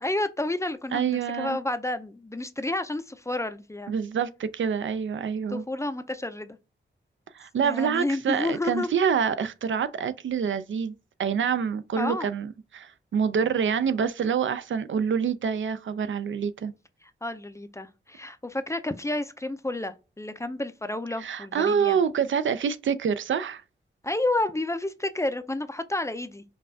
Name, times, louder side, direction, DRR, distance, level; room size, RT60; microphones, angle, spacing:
voice 1, 0.0-3.9 5.5-6.6 7.6-8.9 12.0-12.3 17.2-22.0 24.0-26.4, left 2 dB, 15° left, 0.4 m, -30 dB
voice 2, 0.9-1.6 3.9-5.6 7.3-10.9 11.2-16.7 21.2-23.6, right 7 dB, 80° right, 0.4 m, -26 dB
5.3 x 2.3 x 2.6 m
wide cardioid pair, 130°, 20 cm